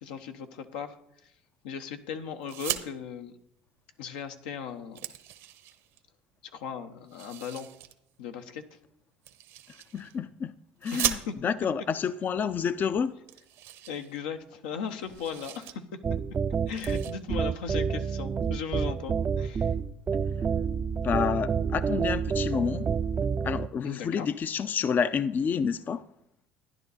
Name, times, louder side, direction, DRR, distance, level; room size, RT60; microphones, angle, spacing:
voice 1, 0.0-1.0 1.6-3.3 4.0-5.0 6.5-7.7 8.2-8.6 10.9-11.3 13.9-15.8 16.7-19.7 23.8-24.3, left 7 dB, 85° left, 0.9 m, -37 dB
sound 1, 2.4-2.9 4.2-4.3 4.6-6.0 7.1-7.9 9.2-10.2 10.8-11.7 12.5-12.6 12.9-13.0 13.3-14.6 14.9-15.7 16.1-16.3 16.7-17.1, right 13 dB, 70° right, 1.0 m, -37 dB
voice 2, 9.9-10.5 10.8-13.1 21.0-22.9 23.4-26.0, left 6 dB, 35° left, 0.5 m, -29 dB
sound 2, 16.0-23.7, right 6 dB, 30° right, 0.4 m, -28 dB
12.0 x 10.5 x 4.1 m
supercardioid pair, 85°, 5 cm